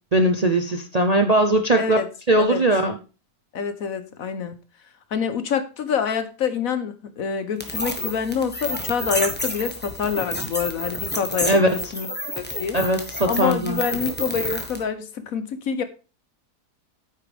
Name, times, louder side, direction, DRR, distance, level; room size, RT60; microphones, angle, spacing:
voice 1, 0.1-2.0 2.3-3.0 11.5-11.7 12.7-13.8, right 1 dB, 35° right, 0.7 m, -19 dB
voice 2, 1.8-2.1 2.4-2.6 3.5-4.6 5.1-12.1 12.3-12.8 13.2-15.8, left 6 dB, 60° left, 1.3 m, -26 dB
sound 1, 7.6-14.8, left 1 dB, 5° left, 1.3 m, -30 dB
9.1 x 8.7 x 3.5 m
omnidirectional pair, 1.7 m